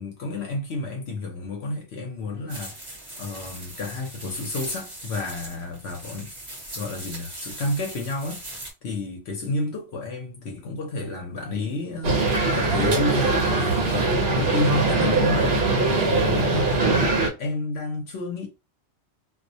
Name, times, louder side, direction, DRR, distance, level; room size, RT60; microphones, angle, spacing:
voice 1, 0.0-2.8 3.1-6.3 6.7-8.4 8.8-14.1 14.4-15.6 16.0-16.7 17.4-18.5, left 2 dB, 75° left, 0.9 m, -30 dB
sound 1, 2.5-8.7, right 1 dB, 25° right, 0.8 m, -39 dB
sound 2, 12.0-17.3, right 2 dB, 65° right, 0.9 m, -21 dB
2.4 x 2.1 x 2.6 m
omnidirectional pair, 1.1 m